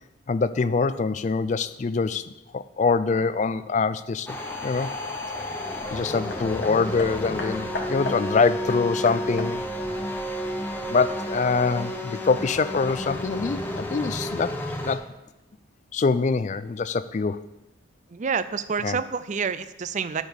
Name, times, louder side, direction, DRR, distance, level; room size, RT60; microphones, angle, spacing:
voice 1, 0.3-4.4 4.6-4.9 5.9-9.6 10.9-14.5 14.8-15.0 15.9-17.4 18.8-19.0, left 4 dB, 35° left, 14 dB, 0.3 m, -24 dB
sound 1, 4.3-15.0, left 1 dB, 10° left, 0.8 m, -31 dB
Hammer, 6.3-11.0 11.9-12.0, left 2 dB, 55° left, 1.4 m, -37 dB
voice 2, 18.1-20.2, right 5 dB, 35° right, 13 dB, 0.4 m, -28 dB
11.5 x 4.1 x 7.0 m, 0.99 s
head